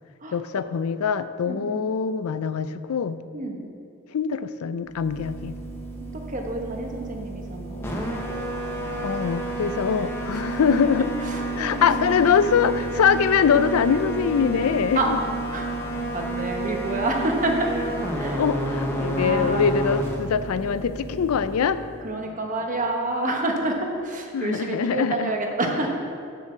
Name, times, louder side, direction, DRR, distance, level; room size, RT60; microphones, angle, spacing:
voice 1, 0.3-3.2 4.1-5.5 9.0-11.1 11.6-15.0 18.3-21.8 24.3-25.3, left 6 dB, 85° left, 13 dB, 0.4 m, -23 dB
voice 2, 1.4-1.8 3.3-3.6 6.1-7.8 11.2-11.9 14.9-15.1 15.5-15.7 16.1-17.7 18.2-18.4 19.1-19.6 22.0-25.9, right 2 dB, 35° right, 2 dB, 1.1 m, -28 dB
sound 1, 4.9-22.1, right 2 dB, 10° left, 1.0 m, -31 dB
sound 2, 7.7-24.2, left 1 dB, 30° left, 0.7 m, -41 dB
7.1 x 6.6 x 7.2 m, 2.5 s
head